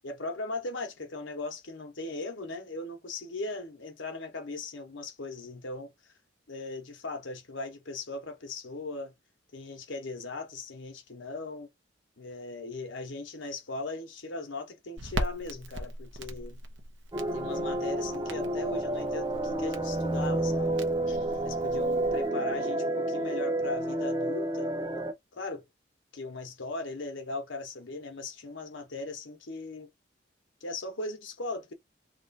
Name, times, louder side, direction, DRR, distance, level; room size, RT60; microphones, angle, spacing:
voice 1, 0.0-6.1 6.5-9.1 9.5-11.7 12.2-16.6 17.3-24.7 25.3-25.6 26.1-29.9 30.6-31.7, left 2 dB, 80° left, 1.0 m, -38 dB
Crackle, 15.0-22.3, right 1 dB, 75° right, 0.9 m, -40 dB
sound 1, 17.1-25.1, right 1 dB, 20° right, 0.6 m, -30 dB
3.1 x 2.5 x 4.1 m
head